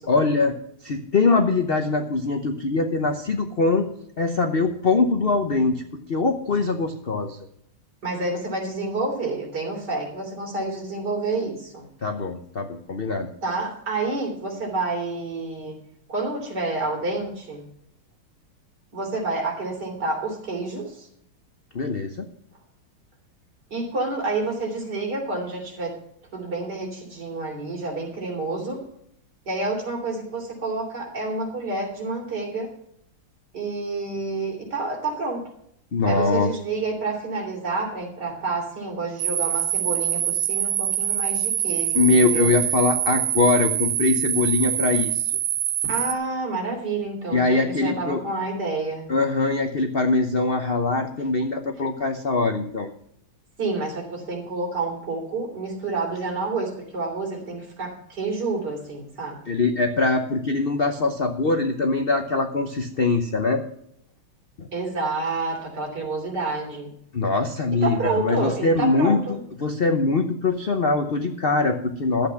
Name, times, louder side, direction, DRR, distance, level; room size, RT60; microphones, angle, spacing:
voice 1, 0.1-0.5 0.8-3.9 4.2-5.8 6.1-7.4 12.0-13.3 21.7-22.2 35.9-36.5 41.9-45.2 47.3-48.2 49.1-52.9 59.5-63.6 64.6-64.7 67.1-69.2 69.6-72.3, left 3 dB, 65° left, 6 dB, 0.5 m, -22 dB
voice 2, 8.0-11.9 13.4-15.8 16.1-17.6 18.9-21.1 23.7-26.0 26.3-28.8 29.5-32.7 33.5-35.4 36.1-42.5 45.8-49.1 53.6-59.5 64.7-66.9 67.8-69.4, right 3 dB, 50° right, 0 dB, 3.9 m, -29 dB
sound 1, 39.2-46.1, right 11 dB, 75° right, 0.8 m, -25 dB
12.5 x 8.2 x 5.8 m, 0.70 s
omnidirectional pair, 2.3 m